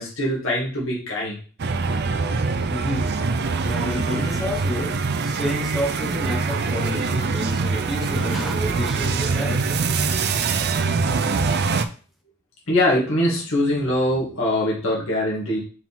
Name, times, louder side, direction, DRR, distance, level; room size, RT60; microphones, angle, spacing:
voice 1, 0.0-1.4 3.9-4.4 12.7-15.6, left 1 dB, 65° left, -5 dB, 2.4 m, -23 dB
sound 1, 1.6-11.9, right 4 dB, 50° right, 0.5 m, -23 dB
voice 2, 2.7-3.1 3.5-9.8, equal, ahead, 2 dB, 1.1 m, -30 dB
5.6 x 4.8 x 3.7 m, 0.39 s
head